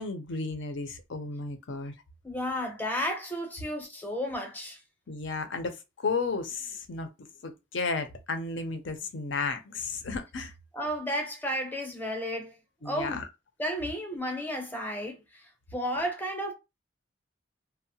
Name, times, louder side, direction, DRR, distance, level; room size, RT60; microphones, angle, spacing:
voice 1, 0.0-1.9 5.1-7.1 7.4-10.5 12.8-13.3, left 4 dB, 70° left, 0.6 m, -33 dB
voice 2, 2.2-4.8 10.7-12.5 12.8-13.2 13.6-16.5, equal, 10° left, 0.6 m, -33 dB
2.7 x 2.0 x 2.7 m
head